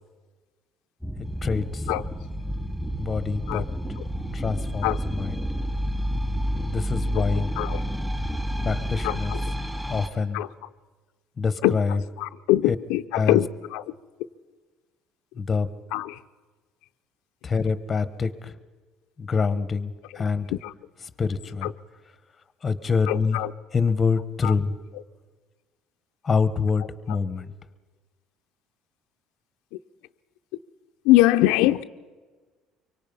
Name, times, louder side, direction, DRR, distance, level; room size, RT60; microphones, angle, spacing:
sound 1, 1.0-10.1, equal, 5° right, 2.3 m, -29 dB
voice 1, 1.4-1.9 3.0-3.6 4.3-5.4 6.7-7.5 8.6-9.3 9.9-10.4 11.4-12.0 12.7-12.8 13.1-13.4 15.4-15.7 17.4-18.6 19.2-20.5 21.2-21.7 22.6-23.4 23.7-24.7 26.2-27.5, left 5 dB, 25° left, 1.0 m, -25 dB
voice 2, 7.1-7.8 9.0-9.4 10.3-10.5 11.6-11.8 12.2-13.9 15.9-16.2 20.5-20.7 21.6-21.7 23.1-23.5 24.4-24.5 31.0-31.8, left 16 dB, 90° left, 0.6 m, -23 dB
25.0 x 23.5 x 5.5 m
cardioid pair, 135°, 0 cm